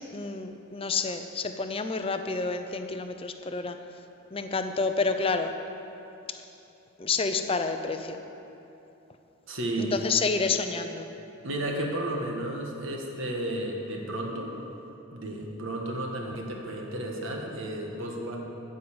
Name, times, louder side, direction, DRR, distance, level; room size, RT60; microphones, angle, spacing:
voice 1, 0.1-3.8 4.3-5.6 7.0-8.2 9.8-11.1, left 4 dB, 25° left, 7 dB, 0.5 m, -29 dB
voice 2, 9.5-9.9 11.4-14.5 15.1-18.4, right 1 dB, 65° right, 0 dB, 1.5 m, -33 dB
12.5 x 5.5 x 8.6 m, 2.9 s
head